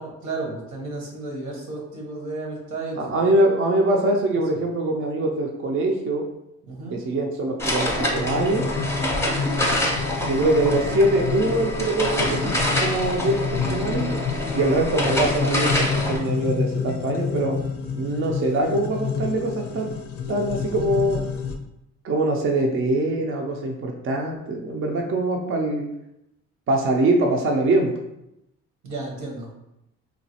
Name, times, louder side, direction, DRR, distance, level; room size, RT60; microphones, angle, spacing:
voice 1, 0.0-3.3 6.7-7.0 28.8-29.5, right 2 dB, 90° right, -2 dB, 1.0 m, -33 dB
voice 2, 3.0-6.2 6.9-8.6 10.2-14.1 14.5-17.6 17.9-20.0 20.3-21.2 22.0-25.9 26.7-27.9, right 2 dB, 45° right, 1 dB, 0.5 m, -23 dB
sound 1, 7.6-16.2, left 1 dB, 10° left, 0.7 m, -26 dB
sound 2, 8.1-21.6, left 6 dB, 50° left, 0.4 m, -29 dB
3.1 x 2.3 x 2.8 m, 0.86 s
cardioid pair, 90°, 30 cm